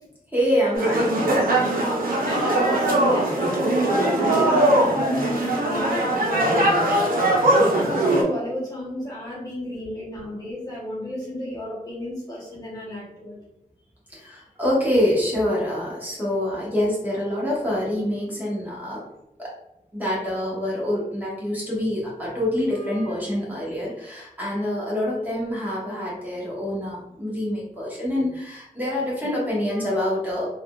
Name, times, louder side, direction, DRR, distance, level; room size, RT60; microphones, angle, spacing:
voice 1, 0.3-1.5 14.1-19.0 19.4-19.5 19.9-30.5, left 1 dB, 10° right, -6 dB, 1.0 m, -26 dB
sound 1, 0.7-8.2, right 1 dB, 85° right, 0.6 m, -21 dB
voice 2, 2.2-6.8 7.4-13.3, left 1 dB, 25° left, -6 dB, 0.9 m, -32 dB
3.5 x 2.4 x 2.3 m, 0.83 s
wide cardioid pair, 130°, 15 cm